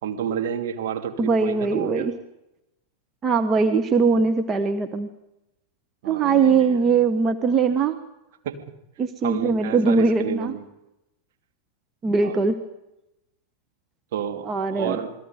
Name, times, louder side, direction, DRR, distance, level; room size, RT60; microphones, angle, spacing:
voice 1, 0.0-2.1 6.0-6.7 8.4-8.7 9.2-10.6 12.2-12.5 14.1-14.5 14.7-15.1, right 8 dB, 55° right, 4 dB, 2.9 m, -30 dB
voice 2, 1.2-2.2 3.2-5.1 6.1-8.0 9.0-10.5 12.0-12.6 14.4-15.0, right 4 dB, 25° right, 7 dB, 1.3 m, -21 dB
28.0 x 21.5 x 5.3 m, 0.90 s
figure-of-eight pair, 90°, 0 cm